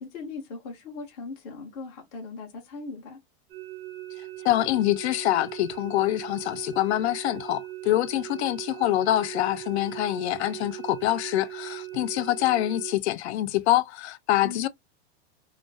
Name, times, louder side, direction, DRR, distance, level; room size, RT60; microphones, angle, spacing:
voice 1, 0.0-3.2 14.4-14.7, left 4 dB, 15° left, 0.3 m, -39 dB
sound 1, 3.5-12.9, right 16 dB, 70° right, 0.7 m, -39 dB
voice 2, 4.2-14.7, left 14 dB, 90° left, 0.5 m, -25 dB
2.2 x 2.2 x 2.4 m
supercardioid pair, 175°, 32 cm